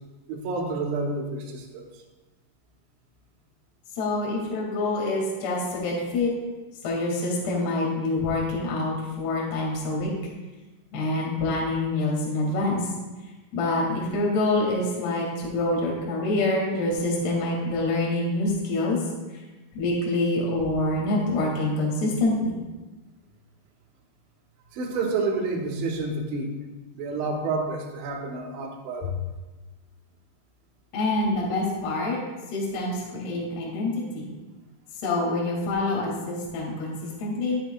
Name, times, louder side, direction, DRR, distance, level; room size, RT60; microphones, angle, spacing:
voice 1, 0.3-1.9 24.7-26.6 26.9-29.1, right 3 dB, 75° right, 0 dB, 3.5 m, -29 dB
voice 2, 4.0-6.3 6.8-10.1 10.9-12.8 13.5-19.0 19.8-22.5 29.0-29.1 30.9-32.2 32.5-34.3 35.0-37.6, left 2 dB, 60° left, -4 dB, 3.9 m, -26 dB
13.0 x 9.0 x 2.3 m, 1.2 s
omnidirectional pair, 5.8 m